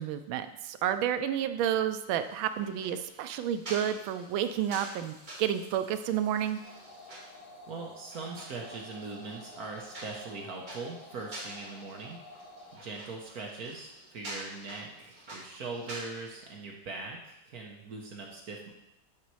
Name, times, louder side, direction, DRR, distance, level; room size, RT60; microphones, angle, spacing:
voice 1, 0.0-6.6, right 10 dB, 80° right, 9 dB, 1.4 m, -30 dB
sound 1, 2.2-16.5, right 1 dB, 25° right, 1.2 m, -48 dB
sound 2, 6.6-12.8, left 2 dB, 90° left, 2.1 m, -51 dB
voice 2, 7.7-12.2 12.7-18.7, right 3 dB, 55° right, 0 dB, 1.2 m, -41 dB
10.5 x 4.0 x 4.7 m, 0.87 s
omnidirectional pair, 2.2 m